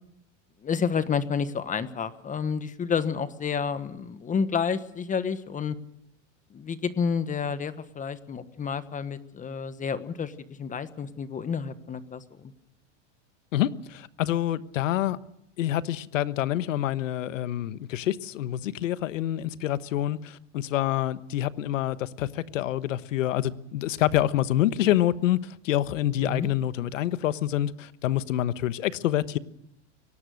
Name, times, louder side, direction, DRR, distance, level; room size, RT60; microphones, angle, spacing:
voice 1, 0.6-5.8 6.5-12.5 26.2-26.5, left 6 dB, 20° left, 12 dB, 1.3 m, -30 dB
voice 2, 13.5-15.2 15.6-29.4, left 13 dB, 85° left, 14 dB, 1.3 m, -27 dB
23.5 x 18.0 x 6.5 m, 0.77 s
supercardioid pair, 130°, 37 cm